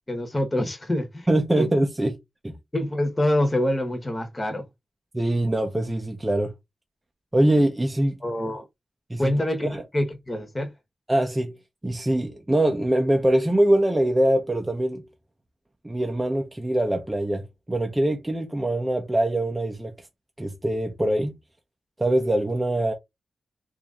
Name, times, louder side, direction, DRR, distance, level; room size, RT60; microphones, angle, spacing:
voice 1, 0.1-1.3 1.5-1.7 2.7-4.7 8.2-8.7 9.2-10.7, left 1 dB, 20° left, 1.0 m, -25 dB
voice 2, 1.3-2.1 2.4-2.5 5.1-6.5 7.3-8.2 9.1-9.3 9.6-9.8 11.1-11.5 11.8-15.1 15.8-19.9 20.4-21.3 22.0-22.9, right 1 dB, 15° right, 0.7 m, -23 dB
2.9 x 2.6 x 3.6 m
wide cardioid pair, 95°, 0 cm